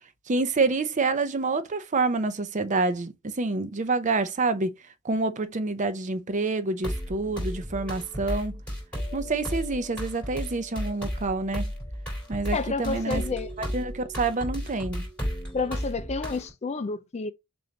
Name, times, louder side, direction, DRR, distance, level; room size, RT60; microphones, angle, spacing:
voice 1, 0.3-4.8 5.0-8.6 9.1-11.7 12.3-13.2 13.7-15.1, right 3 dB, 35° right, 0.6 m, -27 dB
sound 1, 6.8-16.5, equal, 5° left, 3.4 m, -34 dB
voice 2, 12.5-13.6 15.5-17.3, left 3 dB, 30° left, 0.4 m, -30 dB
6.7 x 2.6 x 2.8 m
head